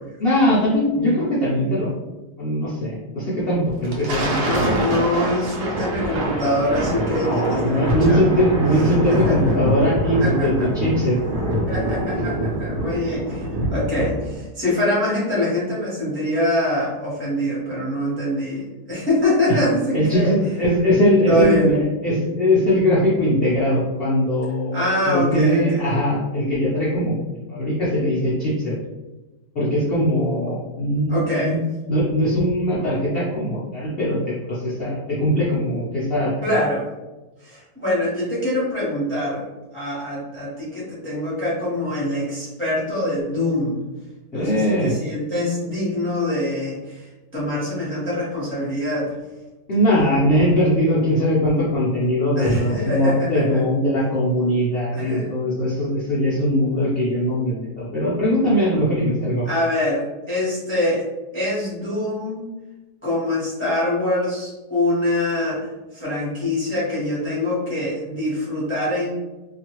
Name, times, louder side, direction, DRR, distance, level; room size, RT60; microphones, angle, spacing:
voice 1, 0.2-1.9 2.4-4.5 7.2-11.2 19.5-19.6 19.9-27.1 27.5-28.8 29.5-31.6 31.9-36.6 44.3-44.9 49.7-59.5, equal, 80° left, -7 dB, 0.5 m, -20 dB
Thunder, 3.7-14.4, right 1 dB, 70° right, 1.1 m, -24 dB
voice 2, 4.4-8.4 8.7-9.6 10.2-10.7 11.7-20.3 21.3-21.8 24.7-25.9 31.1-31.6 36.4-36.9 37.4-39.4 39.7-43.8 44.3-47.0 47.3-49.2 52.4-53.6 54.9-55.3 59.4-61.0 61.3-62.5 63.0-65.7 65.9-69.1, left 1 dB, 15° left, -9 dB, 0.5 m, -24 dB
2.9 x 2.4 x 2.9 m, 1.1 s
omnidirectional pair, 1.9 m